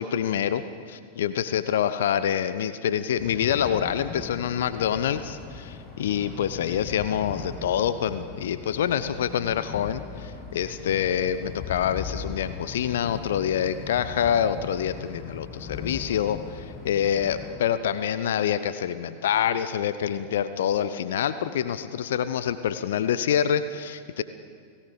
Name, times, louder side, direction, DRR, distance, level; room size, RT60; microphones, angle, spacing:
voice 1, 0.0-24.2, left 9 dB, 60° left, 13 dB, 0.9 m, -26 dB
sound 1, 3.1-17.5, left 5 dB, 35° left, 8.0 m, -39 dB
30.0 x 18.0 x 6.8 m, 2.1 s
figure-of-eight pair, 90°, 0 cm